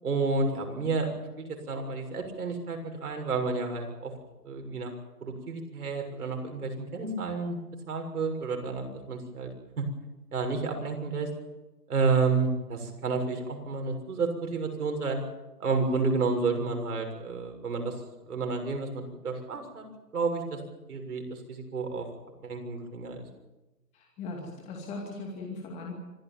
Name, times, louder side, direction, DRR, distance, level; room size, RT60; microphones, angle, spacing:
voice 1, 0.0-1.1 1.4-4.1 4.4-4.9 5.2-7.6 7.9-9.5 9.8-9.9 10.3-11.3 11.9-15.2 15.6-17.9 18.3-19.8 20.1-20.6 20.9-22.1 22.4-23.2, right 4 dB, 65° right, 4 dB, 6.8 m, -30 dB
voice 2, 23.9-25.9, left 3 dB, 15° left, 0 dB, 2.5 m, -39 dB
26.0 x 15.5 x 9.2 m, 1.0 s
hypercardioid pair, 160°, 48 cm